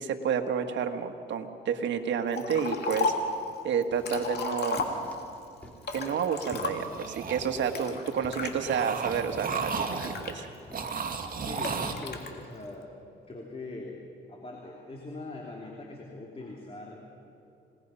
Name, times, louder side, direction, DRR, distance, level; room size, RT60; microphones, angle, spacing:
voice 1, 0.0-3.1 3.6-4.8 5.9-10.5, right 7 dB, 70° right, 6 dB, 1.7 m, -30 dB
Liquid, 2.3-3.3 3.8-5.3 5.8-7.0 7.7-8.5 9.1-10.8 11.6-12.3, left 4 dB, 55° left, 2.8 m, -34 dB
sound 1, 3.7-11.1, equal, 5° left, 3.6 m, -49 dB
sound 2, 6.8-8.0 8.3-10.4 10.7-11.9, right 5 dB, 45° right, 2.2 m, -34 dB
voice 2, 11.4-12.9 13.3-14.0 14.3-17.0, left 2 dB, 30° left, 0 dB, 2.9 m, -42 dB
27.5 x 19.0 x 5.6 m, 2.7 s
cardioid pair, 90°, 20 cm